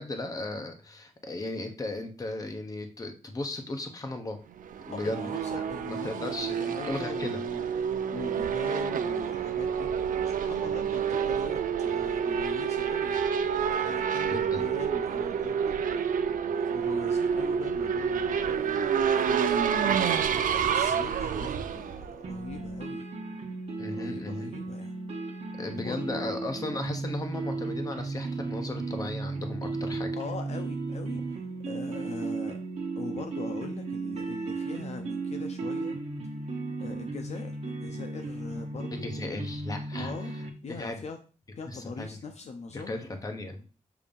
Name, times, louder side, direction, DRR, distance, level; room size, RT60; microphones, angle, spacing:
voice 1, 0.0-4.4 4.9-5.3 5.5-5.6 6.0-7.4 14.3-14.7 21.3-21.6 23.8-24.5 25.6-30.1 38.9-40.1 40.7-41.0 41.7-42.2 42.7-43.6, left 2 dB, 25° left, 5 dB, 0.8 m, -36 dB
Race car auto racing / Accelerating revving vroom, 4.6-22.8, right 7 dB, 80° right, 0.5 m, -28 dB
voice 2, 4.9-16.0 16.5-23.1 23.9-24.9 25.7-26.5 30.2-32.6 33.0-36.0 36.8-39.1 40.0-40.3 40.6-41.2 41.6-43.0, left 4 dB, 55° left, 5 dB, 0.6 m, -42 dB
sound 1, 22.2-40.5, right 3 dB, 50° right, 1.2 m, -35 dB
6.9 x 2.7 x 5.2 m, 0.36 s
wide cardioid pair, 160°, 14 cm